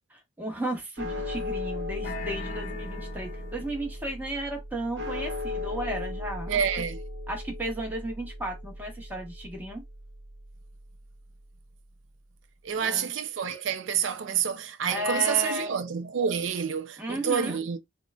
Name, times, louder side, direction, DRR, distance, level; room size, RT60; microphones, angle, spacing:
voice 1, 0.1-6.6 7.3-9.8 12.8-13.1 14.9-15.8 17.0-17.6, right 1 dB, 10° right, 0.9 m, -34 dB
sound 1, 1.0-11.4, left 2 dB, 65° right, 0.8 m, -37 dB
sound 2, 2.0-4.0, left 3 dB, 45° left, 0.5 m, -40 dB
voice 2, 6.5-7.0 12.6-17.8, right 7 dB, 80° right, 0.4 m, -28 dB
3.6 x 2.1 x 2.3 m
head